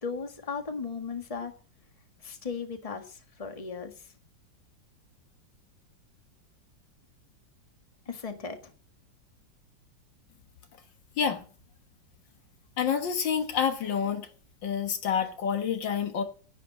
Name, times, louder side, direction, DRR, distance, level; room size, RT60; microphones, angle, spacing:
voice 1, 0.0-1.5 2.2-4.1 8.0-8.7, left 5 dB, 20° left, 1.6 m, -36 dB
voice 2, 12.8-14.3 14.6-16.2, left 7 dB, 75° left, 2.1 m, -28 dB
10.5 x 9.4 x 7.5 m
omnidirectional pair, 2.0 m